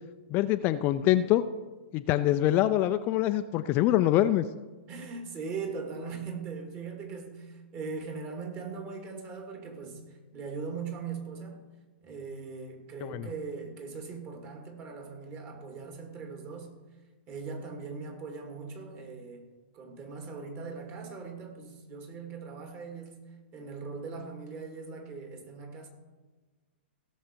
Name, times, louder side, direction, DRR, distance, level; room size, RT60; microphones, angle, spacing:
voice 1, 0.3-1.4 1.9-4.5 13.0-13.3, left 13 dB, 35° left, 0.4 m, -25 dB
voice 2, 4.9-11.6 12.0-16.7 17.3-19.5 19.7-23.2 23.5-25.9, right 4 dB, 30° right, 2.4 m, -40 dB
17.0 x 6.5 x 4.5 m
hypercardioid pair, 120°, 6 cm